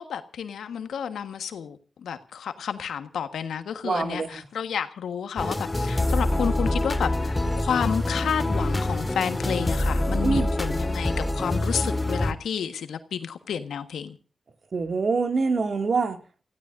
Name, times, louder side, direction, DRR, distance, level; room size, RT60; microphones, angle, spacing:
voice 1, 0.0-14.2, left 8 dB, 85° left, 1.3 m, -31 dB
voice 2, 3.8-4.4 10.2-10.5 14.7-16.2, right 4 dB, 60° right, 2.2 m, -25 dB
sound 1, 5.4-12.3, left 1 dB, 25° left, 1.7 m, -25 dB
29.0 x 15.5 x 2.6 m
supercardioid pair, 45°, 0 cm